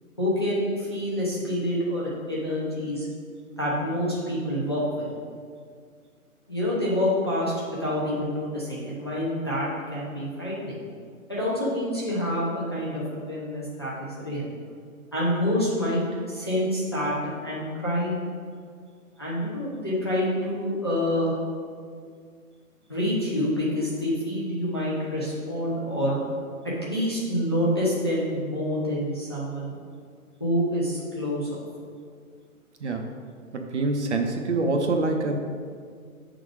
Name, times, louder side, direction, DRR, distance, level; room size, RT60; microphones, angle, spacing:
voice 1, 0.2-3.1 3.6-5.1 6.5-10.8 11.3-14.4 15.1-17.2 17.4-18.1 19.2-21.3 22.9-26.2 26.6-29.7 30.4-31.5, equal, 20° left, -8 dB, 0.6 m, -27 dB
voice 2, 33.5-35.4, right 3 dB, 50° right, 3 dB, 0.8 m, -25 dB
7.3 x 3.8 x 4.8 m, 2.1 s
hypercardioid pair, 175°, 43 cm